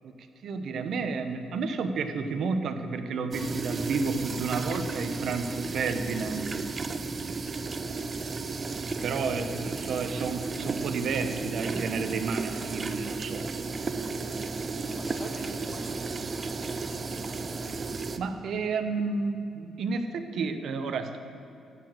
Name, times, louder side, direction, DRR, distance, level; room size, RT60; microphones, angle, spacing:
voice 1, 0.4-6.7 9.0-13.5 18.2-21.2, right 4 dB, 65° right, 8 dB, 0.9 m, -31 dB
sound 1, 3.3-18.2, right 4 dB, 35° right, 0.6 m, -34 dB
voice 2, 8.6-9.6 15.0-16.3 18.4-18.5, left 1 dB, 10° left, 0 dB, 1.8 m, -46 dB
14.5 x 5.1 x 7.6 m, 2.7 s
cardioid pair, 90°, 0 cm